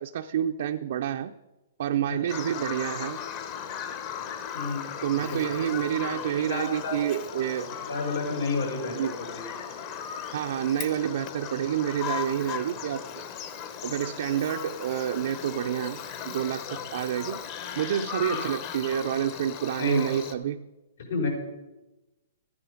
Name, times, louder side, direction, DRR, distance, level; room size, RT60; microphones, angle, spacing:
voice 1, 0.0-1.4 1.8-3.2 5.0-7.7 8.9-9.2 10.3-13.2 13.8-17.4 17.8-20.7, right 10 dB, 60° right, 5 dB, 0.5 m, -28 dB
Bird vocalization bird call bird song, 2.3-20.3, left 8 dB, 35° left, 1.0 m, -37 dB
voice 2, 4.5-4.9 5.3-5.4 6.5-7.0 7.3-9.1 9.3-9.5 18.3-18.4 19.8-20.1 21.0-21.3, left 4 dB, 80° left, 0 dB, 4.8 m, -31 dB
13.5 x 9.5 x 5.1 m, 1.0 s
hypercardioid pair, 155°, 0 cm